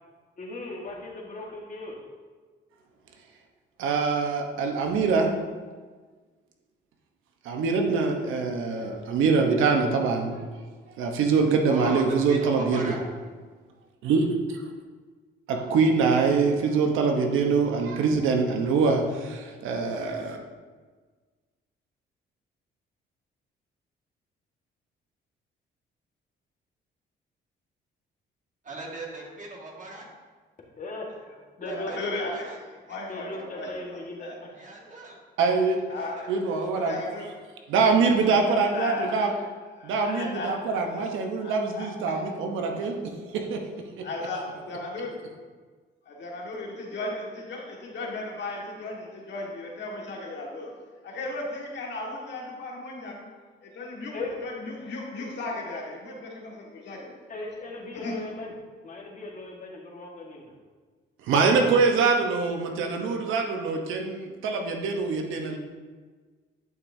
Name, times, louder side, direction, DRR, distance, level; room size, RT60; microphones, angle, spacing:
voice 1, 0.4-1.9 30.8-31.9 33.0-34.5 54.1-54.3 57.3-58.5 58.8-60.5, left 2 dB, 40° left, -1 dB, 1.6 m, -38 dB
voice 2, 3.8-5.3 7.4-10.4 11.0-12.9 14.0-14.6 15.5-20.4 35.4-35.8 36.3-36.9 37.7-39.3 39.8-43.0 43.2-43.6 44.0-44.1 61.2-65.6, right 4 dB, 90° right, 3 dB, 1.0 m, -24 dB
voice 3, 11.7-13.0 28.6-30.1 31.7-32.6 32.9-33.0 34.6-35.2 36.6-36.9, right 2 dB, 40° right, -2 dB, 1.9 m, -39 dB
voice 4, 31.6-34.3 35.9-36.4 36.8-37.3 38.2-41.1 41.4-42.2 44.0-45.2 46.1-50.7 51.0-53.2 53.6-54.1 54.4-57.2 57.9-58.2, left 2 dB, 65° left, -2 dB, 1.8 m, -36 dB
10.5 x 5.9 x 2.7 m, 1.4 s
cardioid pair, 90°, 20 cm